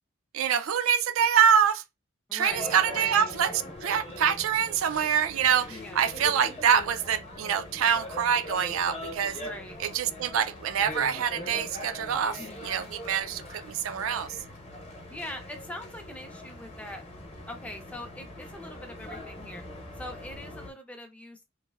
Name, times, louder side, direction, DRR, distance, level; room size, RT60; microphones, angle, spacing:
voice 1, 0.3-1.8 2.3-3.5 3.8-9.4 9.9-14.3, right 8 dB, 85° right, 0.4 m, -25 dB
voice 2, 2.3-3.3 5.7-6.1 9.4-9.8 12.4-12.9 15.1-17.0 17.5-19.6 20.0-21.4, left 1 dB, 5° left, 0.4 m, -42 dB
sound 1, 2.5-20.7, left 1 dB, 30° left, 0.8 m, -42 dB
3.2 x 2.5 x 2.2 m
head